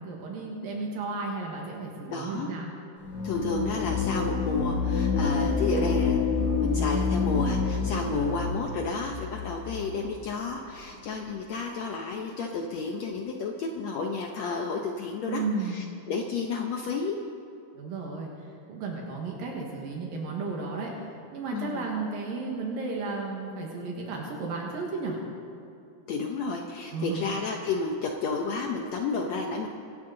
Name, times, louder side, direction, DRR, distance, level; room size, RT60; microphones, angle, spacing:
voice 1, 0.0-2.7 8.1-8.4 15.3-15.8 17.7-25.2 26.9-27.3, right 3 dB, 75° right, -1 dB, 3.2 m, -34 dB
voice 2, 2.1-2.5 3.2-17.2 21.5-21.8 26.1-29.7, left 4 dB, 80° left, 2 dB, 1.5 m, -31 dB
sound 1, 3.0-10.2, left 5 dB, 50° left, 3.5 m, -28 dB
25.0 x 12.5 x 3.9 m, 2.7 s
omnidirectional pair, 4.2 m